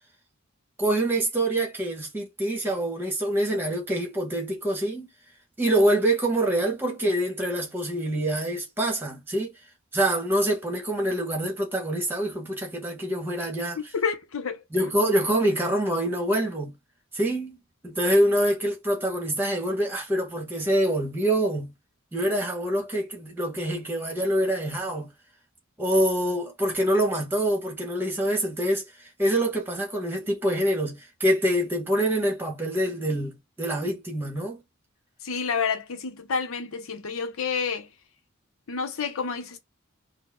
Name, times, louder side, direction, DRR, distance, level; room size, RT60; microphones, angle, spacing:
voice 1, 0.8-5.1 5.6-9.5 9.9-13.8 14.7-16.7 17.1-21.7 22.1-25.1 25.8-34.6, right 1 dB, 10° right, 1.1 m, -25 dB
voice 2, 13.8-14.6 35.2-37.9 38.7-39.6, left 5 dB, 85° left, 0.7 m, -29 dB
4.0 x 2.0 x 3.5 m
head